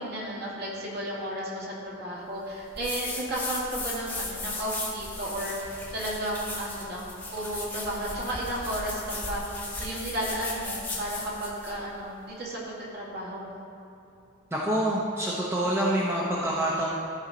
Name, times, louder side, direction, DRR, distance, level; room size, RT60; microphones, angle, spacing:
voice 1, 0.0-9.4 9.8-12.6 12.9-13.6, right 1 dB, 50° right, -5 dB, 2.2 m, -33 dB
sound 1, 2.7-11.8, left 2 dB, 10° left, 1.3 m, -37 dB
voice 2, 14.5-16.8, right 1 dB, 10° right, -5 dB, 0.8 m, -26 dB
13.5 x 5.6 x 3.8 m, 2.8 s
head